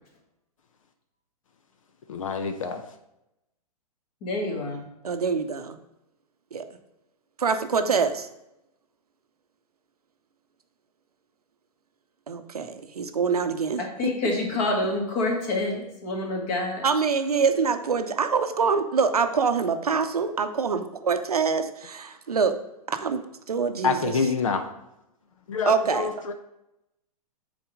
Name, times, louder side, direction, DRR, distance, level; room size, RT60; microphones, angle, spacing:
voice 1, 2.1-2.8 23.8-24.6 25.5-26.3, left 5 dB, 55° left, 0.7 m, -26 dB
voice 2, 4.2-4.8 13.8-16.8, left 2 dB, 35° left, 1.8 m, -27 dB
voice 3, 5.0-5.8 6.5-6.6 7.4-8.3 12.3-14.1 16.8-22.6 22.9-24.2 25.7-26.1, right 5 dB, 70° right, 0.7 m, -25 dB
7.1 x 4.4 x 4.9 m
figure-of-eight pair, 110°, 20 cm